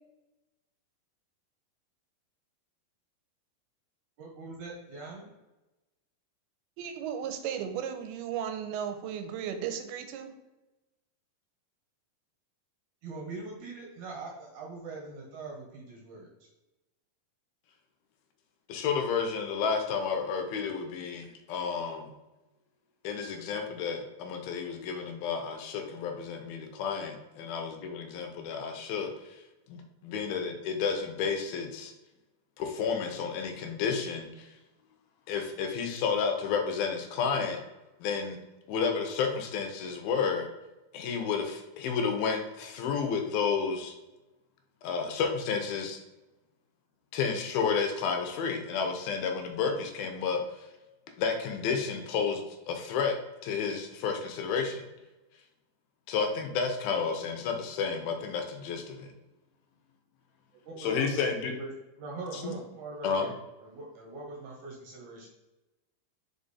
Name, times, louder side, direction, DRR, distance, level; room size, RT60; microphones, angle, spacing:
voice 1, 4.2-5.2 13.0-16.3 60.7-61.7 62.0-63.3 63.6-65.3, right 3 dB, 65° right, -1 dB, 2.1 m, -42 dB
voice 2, 6.8-10.3, right 8 dB, 90° right, 7 dB, 2.6 m, -35 dB
voice 3, 18.7-22.1 23.0-29.1 29.7-31.9 32.6-34.5 35.3-37.6 38.0-38.4 38.7-40.5 40.9-44.0 44.8-46.0 47.1-50.4 51.2-53.2 53.4-54.8 56.1-59.1 60.7-61.5 62.3-62.5 63.0-63.3, left 6 dB, 80° left, 4 dB, 2.5 m, -31 dB
5.1 x 5.0 x 4.1 m, 1.0 s
omnidirectional pair, 4.4 m